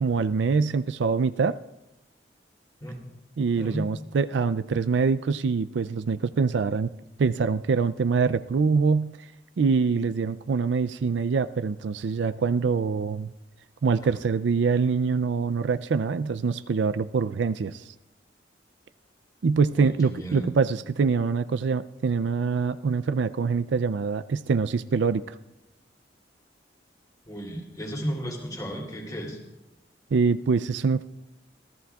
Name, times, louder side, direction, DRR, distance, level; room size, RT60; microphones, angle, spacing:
voice 1, 0.0-1.6 3.4-6.9 7.2-9.1 9.6-13.3 13.8-17.8 19.4-25.4 30.1-31.0, right 5 dB, 80° right, 13 dB, 0.4 m, -24 dB
voice 2, 3.5-3.9 19.7-20.4 27.3-29.4, equal, 20° left, 0 dB, 2.9 m, -34 dB
25.0 x 16.0 x 2.4 m, 0.98 s
head